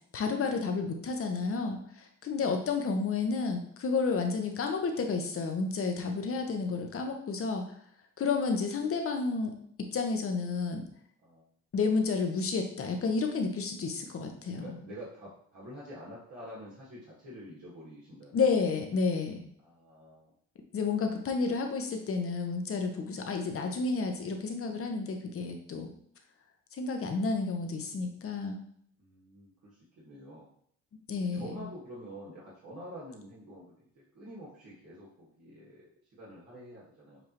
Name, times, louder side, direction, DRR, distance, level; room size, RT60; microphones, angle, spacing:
voice 1, 0.1-7.6 8.2-9.5 9.9-10.8 11.7-14.7 18.3-19.4 20.7-25.9 26.7-28.6 31.1-31.5, left 4 dB, 45° left, 4 dB, 0.9 m, -31 dB
voice 2, 14.5-18.4 19.6-20.3 29.0-30.5 31.1-37.3, equal, 60° right, -7 dB, 1.7 m, -48 dB
6.8 x 2.6 x 2.9 m, 0.65 s
cardioid pair, 90°, 30 cm